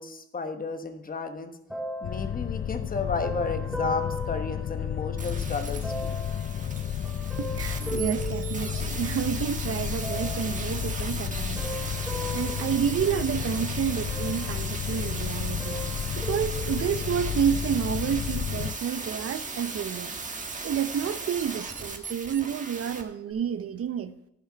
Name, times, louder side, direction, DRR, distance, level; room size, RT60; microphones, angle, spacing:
voice 1, 0.0-1.5 2.0-6.2, left 4 dB, 30° left, 1.2 m, -33 dB
sound 1, 1.7-5.3 5.8-9.3 10.0-10.7 11.3-13.6 14.1-15.1 15.3-17.4 18.1-18.2, right 1 dB, ahead, 1.7 m, -38 dB
sound 2, 2.0-18.7, left 9 dB, 45° left, 0.5 m, -32 dB
sound 3, 5.2-23.0 23.3-23.4, right 4 dB, 25° right, 1.4 m, -37 dB
voice 2, 7.4-11.7 12.3-15.8 16.2-20.2 20.6-24.1, right 8 dB, 50° right, 0.7 m, -30 dB
14.0 x 5.6 x 4.6 m
cardioid pair, 90°, 30 cm